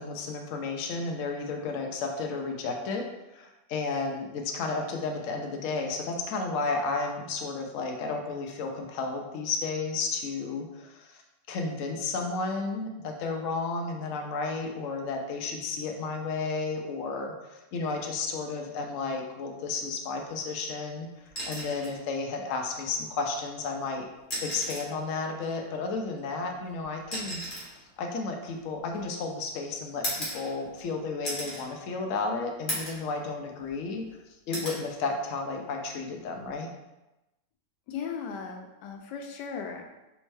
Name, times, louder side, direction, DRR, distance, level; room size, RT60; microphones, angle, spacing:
voice 1, 0.0-3.0 3.3-11.2 11.5-24.0 24.4-27.4 28.0-34.1 34.5-36.7, left 4 dB, 65° left, 2 dB, 0.8 m, -32 dB
sound 1, 21.3-22.0 23.4-23.5 24.2-25.0 26.1-29.2 30.0-30.9 31.2-31.7 32.1-32.2 32.7-33.1 33.5-34.1 34.5-34.8 36.3-36.5, equal, 30° left, 1.5 m, -36 dB
voice 2, 37.9-40.0, left 6 dB, 80° left, 3 dB, 1.2 m, -37 dB
4.2 x 3.5 x 3.2 m, 1.0 s
omnidirectional pair, 1.8 m